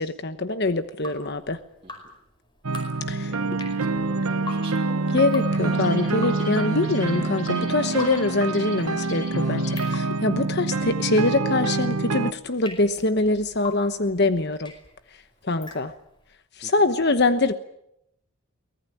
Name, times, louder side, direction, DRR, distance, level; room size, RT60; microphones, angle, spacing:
voice 1, 0.0-1.6 3.1-3.3 5.1-14.7 15.4-15.9 16.6-17.5, left 2 dB, 50° left, 10 dB, 1.1 m, -24 dB
Drip, 0.8-16.3, left 3 dB, 20° left, 5.0 m, -43 dB
sound 1, 2.6-12.3, right 3 dB, 80° right, 1.1 m, -26 dB
voice 2, 3.3-5.2 16.6-16.9, right 3 dB, 25° right, -1 dB, 2.9 m, -45 dB
sound 2, 5.5-9.9, left 2 dB, 65° left, 6.5 m, -40 dB
24.0 x 19.0 x 8.7 m, 0.80 s
head